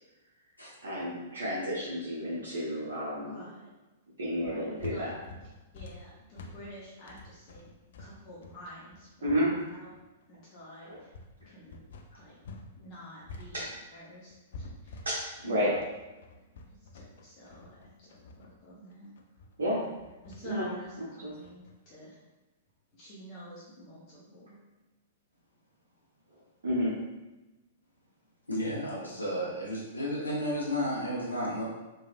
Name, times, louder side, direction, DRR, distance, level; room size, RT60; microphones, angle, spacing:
voice 1, 0.8-3.4 4.2-5.1 9.2-9.5 10.9-11.0 13.5-13.7 15.0-15.7 19.6-19.8 20.4-20.7 21.0-21.3 26.6-26.9, equal, 65° right, -7 dB, 0.7 m, -31 dB
voice 2, 3.2-3.7 4.4-5.1 5.7-7.7 8.0-9.9 10.3-11.1 11.5-11.8 12.2-12.4 12.8-13.6 13.9-15.1 15.4-15.8 16.9-19.1 20.2-22.2 22.9-24.6, equal, 35° left, -7 dB, 0.7 m, -49 dB
sound 1, 4.4-12.7 13.0-21.7, left 3 dB, 60° left, 0.3 m, -48 dB
voice 3, 28.5-31.7, equal, 85° left, -5 dB, 0.7 m, -32 dB
3.2 x 2.3 x 2.4 m, 1.1 s
figure-of-eight pair, 105°, 0 cm